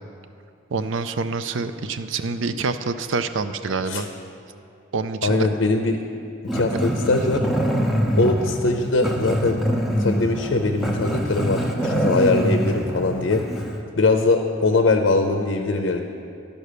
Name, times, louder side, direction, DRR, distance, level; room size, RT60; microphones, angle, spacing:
voice 1, 0.7-4.1 4.9-5.5 6.7-6.9, right 4 dB, 75° right, 11 dB, 0.5 m, -26 dB
voice 2, 5.2-6.0 6.5-7.5 8.2-9.6 10.0-13.4 14.0-16.0, left 3 dB, 65° left, 4 dB, 0.6 m, -21 dB
Growling, 6.5-13.8, equal, ahead, 0.7 m, -24 dB
12.5 x 5.4 x 6.7 m, 2.6 s
head